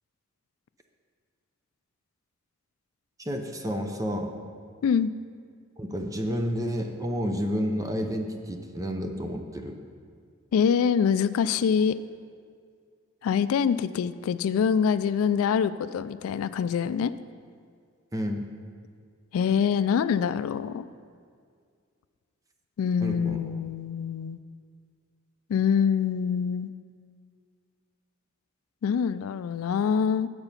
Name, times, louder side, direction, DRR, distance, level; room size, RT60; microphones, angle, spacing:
voice 1, 3.2-4.3 5.8-9.8 18.1-18.4 23.0-23.4, equal, 15° right, 4 dB, 0.5 m, -30 dB
voice 2, 10.5-12.0 13.2-17.1 19.3-20.9 22.8-24.4 25.5-26.7 28.8-30.3, left 7 dB, 75° left, 15 dB, 0.3 m, -25 dB
7.9 x 6.9 x 5.6 m, 2.1 s
head